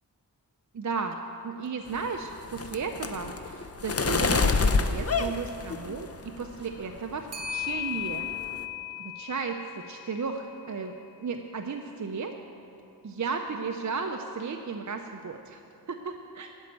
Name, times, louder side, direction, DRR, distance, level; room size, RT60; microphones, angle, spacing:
voice 1, 0.7-1.2 1.4-8.3 9.0-12.3 13.0-15.6 15.9-16.5, right 5 dB, 45° right, 5 dB, 0.6 m, -34 dB
Clock, 1.1-1.2 1.6-1.7 4.5-4.8 7.3-11.5, left 10 dB, 85° right, 0.9 m, -37 dB
sound 1, 1.9-6.3 6.7-7.2 7.4-7.7 8.0-8.6, left 4 dB, 35° left, 0.6 m, -28 dB
12.0 x 5.2 x 8.6 m, 2.6 s
wide cardioid pair, 75°, 40 cm